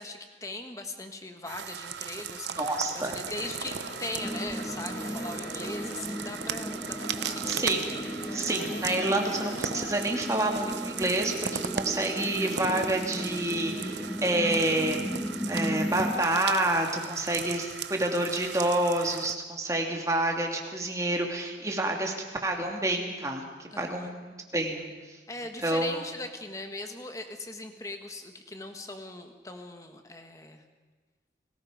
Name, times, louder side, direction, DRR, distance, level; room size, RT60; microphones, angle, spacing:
voice 1, 0.0-7.6 23.7-24.1 25.3-30.6, left 2 dB, 20° left, 6 dB, 1.6 m, -40 dB
sound 1, 1.4-19.3, right 7 dB, 75° right, 0.9 m, -38 dB
voice 2, 2.6-3.2 7.5-7.9 8.3-11.3 11.7-15.1 15.5-22.1 22.4-25.2 25.6-25.9, right 1 dB, 15° right, 2 dB, 2.4 m, -28 dB
sound 2, 3.2-9.8, left 1 dB, 80° left, 3.6 m, -43 dB
sound 3, 4.2-16.2, equal, 5° left, 1.4 m, -36 dB
30.0 x 19.5 x 5.1 m, 1.3 s
head